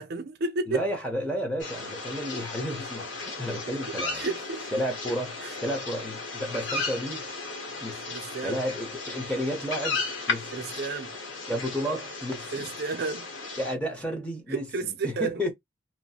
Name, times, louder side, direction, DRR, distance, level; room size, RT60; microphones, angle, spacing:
voice 1, 0.0-0.8 3.5-4.7 5.4-5.6 8.1-8.6 10.5-11.1 12.5-13.3 14.5-15.5, right 4 dB, 55° right, 0.5 m, -32 dB
voice 2, 0.7-4.2 4.7-7.2 7.8-8.1 8.4-10.5 11.5-12.7 13.6-15.5, equal, 5° left, 1.0 m, -32 dB
sound 1, 1.6-13.7, left 3 dB, 70° left, 1.1 m, -35 dB
3.0 x 2.1 x 2.7 m
head